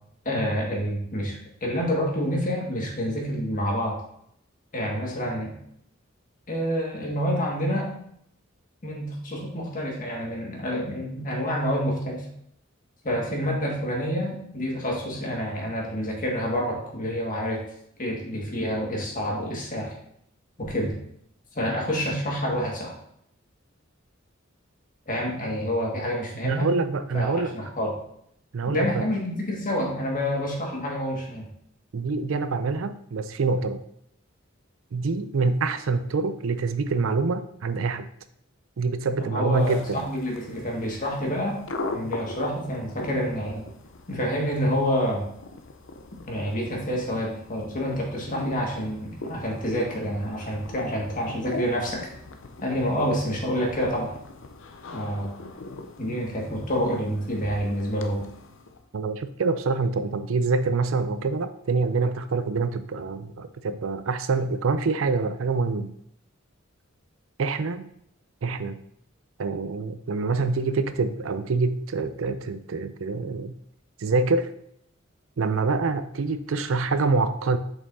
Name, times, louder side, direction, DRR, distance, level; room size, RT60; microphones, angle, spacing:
voice 1, 0.3-4.0 4.7-5.6 6.5-7.9 8.8-12.2 13.0-17.6 18.0-19.9 20.6-21.0 21.5-23.0 25.1-26.7 27.1-28.0 28.7-31.5 39.2-41.6 41.9-43.7 44.1-45.3 46.1-52.1 52.6-54.1 54.9-55.4 56.0-58.3, equal, 45° left, -2 dB, 1.8 m, -28 dB
voice 2, 26.4-27.5 28.5-29.1 31.9-33.8 34.9-38.1 38.8-40.0 58.9-65.9 67.4-67.9 68.4-68.8 69.4-73.5 74.0-74.5 75.4-77.6, right 4 dB, 85° right, 11 dB, 0.5 m, -26 dB
sound 1, 39.5-58.9, left 2 dB, 70° left, 0.6 m, -41 dB
7.1 x 5.4 x 2.7 m, 0.71 s
head